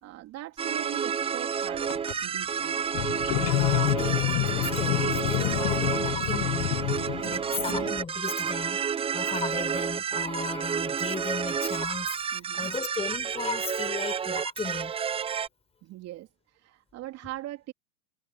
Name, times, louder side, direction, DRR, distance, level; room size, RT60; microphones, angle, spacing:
voice 1, 0.0-2.7 7.2-7.5 12.3-12.7 15.8-17.7, right 15 dB, 35° right, 3.1 m, -41 dB
sound 1, 0.6-15.5, right 7 dB, 10° right, 0.9 m, -30 dB
sound 2, 1.7-2.1 2.9-7.9, left 31 dB, 40° left, 1.4 m, -28 dB
voice 2, 3.4-14.9, left 5 dB, 15° left, 5.5 m, -36 dB
hypercardioid pair, 105°, 46 cm